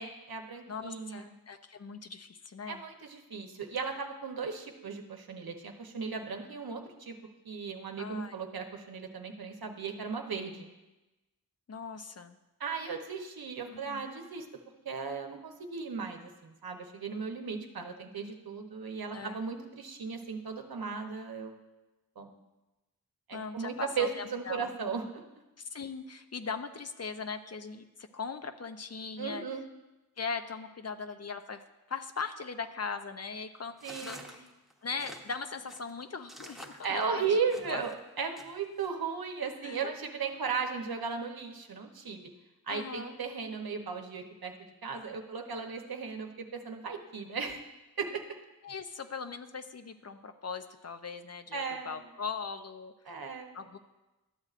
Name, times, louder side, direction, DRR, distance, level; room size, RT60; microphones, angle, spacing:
voice 1, 0.0-1.3 2.7-7.1 7.4-10.7 12.6-14.5 14.8-21.5 22.2-22.3 23.3-25.2 29.2-29.6 33.8-34.4 36.8-42.3 42.7-44.5 44.8-47.6 48.0-48.2 51.5-52.0 53.1-53.6, right 5 dB, 80° right, 4 dB, 0.9 m, -36 dB
voice 2, 0.7-2.8 8.0-8.3 11.7-12.4 13.7-14.1 19.1-19.4 23.3-24.7 25.6-29.5 30.2-33.7 34.0-34.5 34.8-37.4 37.7-37.8 39.6-40.0 42.7-43.2 48.6-52.9 53.5-53.8, left 5 dB, 45° left, 8 dB, 0.5 m, -40 dB
sound 1, 33.8-37.9 38.4-38.9, equal, ahead, 0.9 m, -49 dB
12.5 x 7.8 x 2.5 m, 1.1 s
wide cardioid pair, 70°, 36 cm